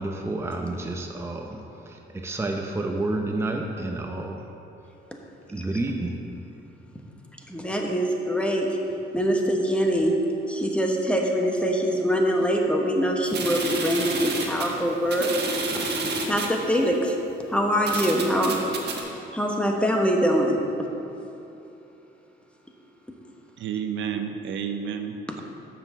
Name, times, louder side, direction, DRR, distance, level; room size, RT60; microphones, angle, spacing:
voice 1, 0.0-4.4 5.5-6.2, right 2 dB, 15° right, 2 dB, 0.7 m, -30 dB
voice 2, 7.5-8.7 9.1-10.1 10.5-15.3 15.7-15.8 16.3-17.1 17.5-18.6 19.3-20.6, equal, 5° left, 1 dB, 1.1 m, -23 dB
sound 1, 13.2-16.6 17.3-17.4 17.8-19.0, right 3 dB, 55° right, 1.3 m, -30 dB
voice 3, 23.6-25.4, right 7 dB, 70° right, 7 dB, 0.6 m, -31 dB
7.1 x 5.9 x 6.8 m, 2.9 s
cardioid pair, 90°, 20 cm